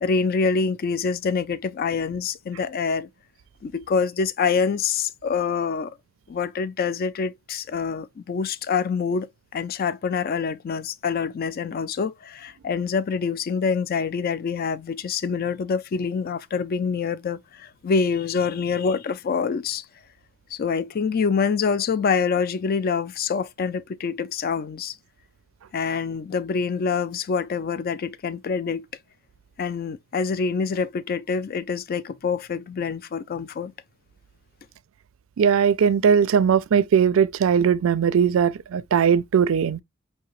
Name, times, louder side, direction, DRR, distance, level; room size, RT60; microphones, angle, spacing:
voice 1, 0.0-3.1 3.6-6.0 6.3-19.9 20.5-25.0 25.7-28.9 29.6-33.7, left 5 dB, 45° left, 0.3 m, -26 dB
voice 2, 35.4-39.8, right 7 dB, 65° right, 0.4 m, -19 dB
5.5 x 2.8 x 3.0 m
head